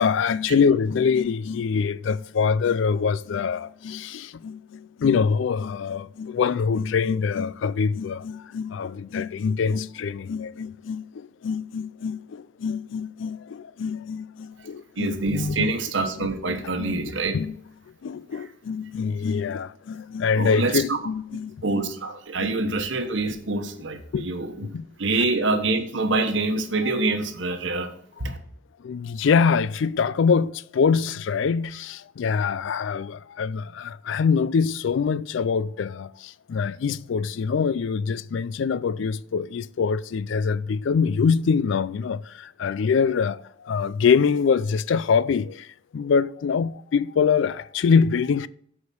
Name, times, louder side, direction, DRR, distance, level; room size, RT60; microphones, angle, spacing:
voice 1, 0.0-15.8 16.2-17.0 17.3-17.6 18.0-21.9 22.4-22.6 24.1-24.3 24.7-24.9 28.2-28.4 28.8-48.5, left 6 dB, 65° left, 0.3 m, -24 dB
voice 2, 15.0-17.4 20.4-21.0 21.6-27.9 28.2-28.4, right 3 dB, 60° right, 1.1 m, -26 dB
8.3 x 4.9 x 7.0 m
head